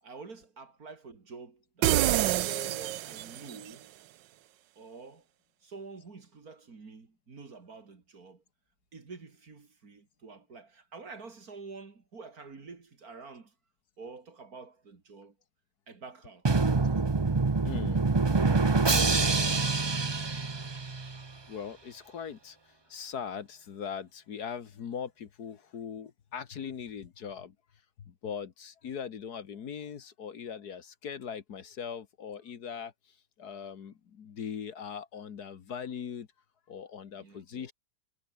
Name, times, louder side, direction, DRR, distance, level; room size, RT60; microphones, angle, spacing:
voice 1, 0.0-3.9 4.8-5.3 5.6-8.4 8.9-13.5 14.0-15.4 15.9-16.7 37.1-37.7, right 4 dB, 55° right, 3.1 m, -48 dB
sound 1, 1.8-3.6, right 14 dB, 85° right, 1.4 m, -27 dB
Drum, 16.5-21.3, right 3 dB, 25° right, 0.5 m, -26 dB
voice 2, 17.6-18.0 21.5-22.6 22.9-27.6 28.0-32.9 33.4-36.3 36.7-37.7, left 7 dB, 65° left, 1.8 m, -40 dB
omnidirectional pair, 1.9 m